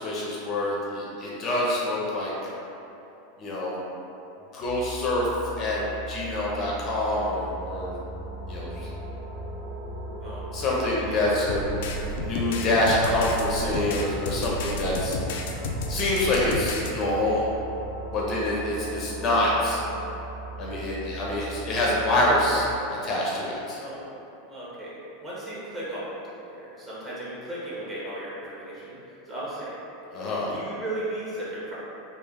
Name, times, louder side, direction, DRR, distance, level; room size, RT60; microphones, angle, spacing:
voice 1, 0.0-2.3 3.4-3.8 4.5-5.3 5.6-5.8 6.1-8.0 8.5-8.9 10.5-11.6 11.9-15.2 15.9-17.5 18.1-19.8 20.6-22.7 23.0-23.8 30.1-30.5, left 1 dB, 35° left, -5 dB, 0.6 m, -26 dB
sound 1, 4.6-22.7, right 5 dB, 50° right, 0.7 m, -40 dB
sound 2, 7.1-22.7, equal, 65° right, 1.2 m, -41 dB
sound 3, 11.5-16.9, left 2 dB, 70° left, 0.4 m, -32 dB
voice 2, 23.8-24.1 24.5-29.8 30.4-31.8, right 1 dB, 20° right, -9 dB, 1.1 m, -36 dB
3.4 x 2.4 x 3.7 m, 2.9 s
supercardioid pair, 135°, 0 cm